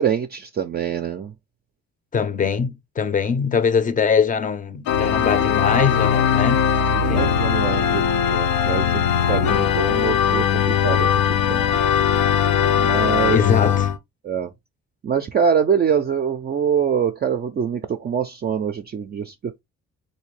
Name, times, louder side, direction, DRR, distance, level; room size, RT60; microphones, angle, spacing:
voice 1, 0.0-1.3 7.0-11.7 12.7-13.4 14.2-14.5 15.0-19.6, right 7 dB, 35° right, 0.4 m, -24 dB
voice 2, 2.1-7.3 13.3-13.9, left 6 dB, 25° left, 0.5 m, -22 dB
Organ, 4.9-14.0, left 8 dB, 90° left, 0.6 m, -19 dB
3.4 x 2.7 x 3.2 m
cardioid pair, 90°, 30 cm